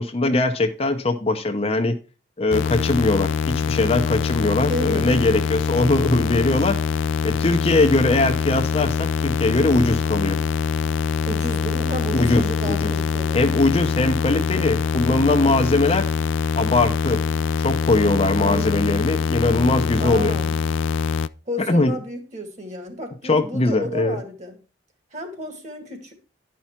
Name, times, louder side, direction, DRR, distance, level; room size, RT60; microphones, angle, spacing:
voice 1, 0.0-1.9 2.4-6.8 7.2-10.4 12.1-12.9 13.3-16.1 16.6-17.2 17.6-20.4 21.6-21.9 23.2-24.2, left 2 dB, 30° left, 0.7 m, -21 dB
sound 1, 2.5-21.3, left 6 dB, 80° left, 0.4 m, -24 dB
voice 2, 4.7-5.1 11.1-13.4 18.4-18.7 20.0-20.6 21.5-24.6 25.1-26.1, equal, 35° right, 2.0 m, -32 dB
11.0 x 5.8 x 4.4 m
head